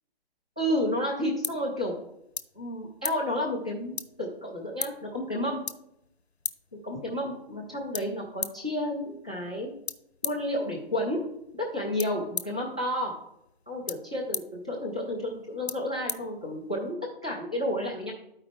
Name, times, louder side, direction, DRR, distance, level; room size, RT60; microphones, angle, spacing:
voice 1, 0.6-2.0 2.5-5.6 6.8-9.7 10.2-11.2 11.6-13.1 13.7-18.1, left 1 dB, 5° left, -3 dB, 0.3 m, -31 dB
sound 1, 0.7-16.9, left 5 dB, 90° left, 0.8 m, -41 dB
12.5 x 4.8 x 3.5 m, 0.81 s
figure-of-eight pair, 140°, 31 cm